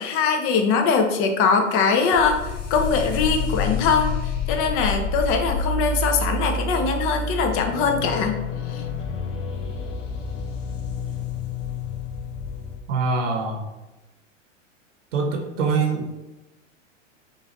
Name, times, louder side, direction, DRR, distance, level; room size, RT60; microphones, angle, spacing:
voice 1, 0.0-8.4 8.7-8.8, left 5 dB, 35° left, 5 dB, 0.7 m, -22 dB
sound 1, 2.1-12.8, left 4 dB, 75° left, 0.8 m, -28 dB
voice 2, 12.9-13.6 15.1-16.1, right 4 dB, 70° right, 3 dB, 1.0 m, -24 dB
5.5 x 2.6 x 2.9 m, 1.0 s
hypercardioid pair, 100°, 38 cm